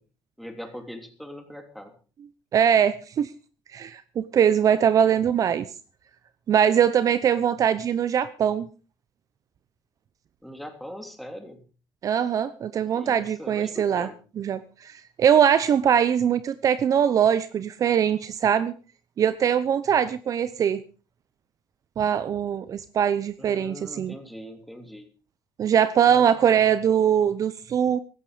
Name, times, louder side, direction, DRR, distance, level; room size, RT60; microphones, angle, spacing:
voice 1, 0.4-1.9 10.4-11.6 12.9-14.1 23.4-25.1 26.0-26.7, equal, ahead, 5 dB, 3.2 m, -41 dB
voice 2, 2.5-3.3 3.7-5.7 6.5-8.7 12.0-14.1 14.4-18.7 19.2-20.8 22.0-24.2 25.6-28.0, right 8 dB, 45° right, 15 dB, 0.8 m, -22 dB
16.0 x 14.0 x 5.1 m, 0.36 s
cardioid pair, 130°, 8 cm